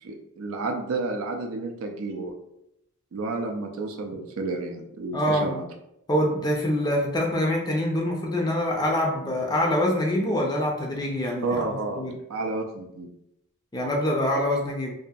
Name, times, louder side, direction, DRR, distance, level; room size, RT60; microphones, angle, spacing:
voice 1, 0.0-2.3 3.1-5.6 11.4-12.0 12.3-13.1, right 3 dB, 65° right, 4 dB, 0.4 m, -31 dB
voice 2, 5.1-5.5 6.1-12.2 13.7-14.9, left 1 dB, 20° left, 0 dB, 0.4 m, -25 dB
2.8 x 2.5 x 2.3 m, 0.81 s
head